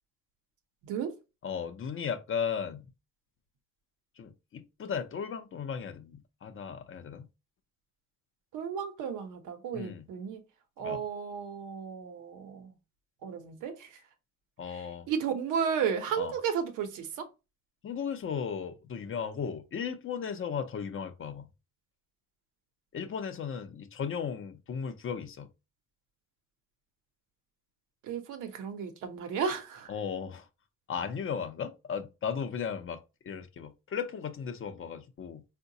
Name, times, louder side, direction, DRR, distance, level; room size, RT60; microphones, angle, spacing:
voice 1, 0.8-1.1 8.5-10.4 10.8-12.7 13.2-13.9 14.7-17.3 28.0-29.9, right 7 dB, 90° right, 0.7 m, -34 dB
voice 2, 1.4-2.8 4.2-7.3 9.7-10.1 10.8-11.0 14.6-15.1 16.2-16.3 17.8-21.5 22.9-25.5 29.9-30.5 30.9-35.4, left 7 dB, 45° left, 0.6 m, -36 dB
3.8 x 2.2 x 2.6 m
cardioid pair, 90°, 30 cm